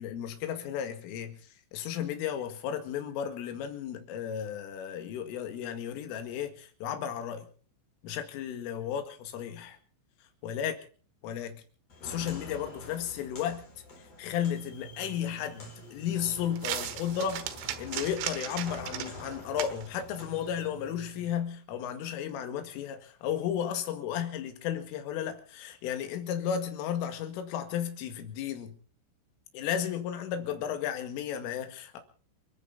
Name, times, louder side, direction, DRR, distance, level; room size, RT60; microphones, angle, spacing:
voice 1, 0.0-1.4 1.7-7.5 8.0-9.8 10.4-10.7 11.2-11.6 12.0-13.6 14.2-28.8 29.5-32.0, left 9 dB, 80° left, 4.5 m, -34 dB
Walk footsteps, 11.9-20.7, left 3 dB, 35° left, 4.8 m, -47 dB
sound 1, 14.5-21.4, right 12 dB, 80° right, 4.0 m, -40 dB
29.0 x 10.0 x 4.1 m
omnidirectional pair, 5.9 m